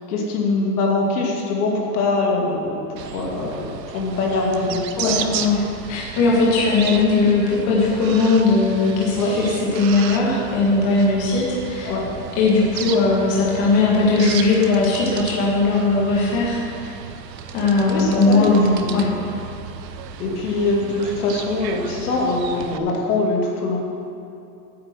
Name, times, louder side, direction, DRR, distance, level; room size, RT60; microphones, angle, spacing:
voice 1, 0.1-5.4 9.2-9.4 11.9-12.2 17.9-19.3 20.2-23.8, left 2 dB, 60° left, -1 dB, 2.5 m, -23 dB
sound 1, 3.0-22.8, right 8 dB, 80° right, 1.0 m, -34 dB
voice 2, 5.0-5.6 5.9-9.4 9.8-11.9 12.4-16.6 17.5-19.1, left 3 dB, 30° left, -4 dB, 1.8 m, -18 dB
9.0 x 8.4 x 7.7 m, 2.6 s
supercardioid pair, 165°, 50 cm